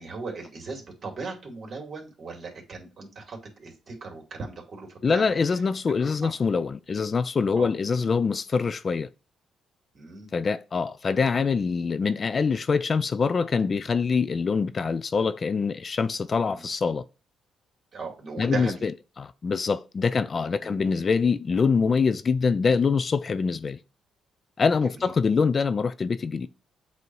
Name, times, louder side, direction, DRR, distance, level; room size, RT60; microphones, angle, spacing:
voice 1, 0.0-5.4 5.9-6.0 6.2-6.3 7.6-7.7 9.9-10.3 16.5-16.7 17.9-18.9 20.2-20.3 20.6-20.9 24.8-25.1, right 4 dB, 45° right, 2.5 m, -38 dB
voice 2, 5.0-9.1 10.3-17.0 18.4-18.9 19.2-23.8 24.6-26.5, left 5 dB, 40° left, 0.4 m, -24 dB
7.9 x 2.7 x 4.6 m
cardioid pair, 90°, 0 cm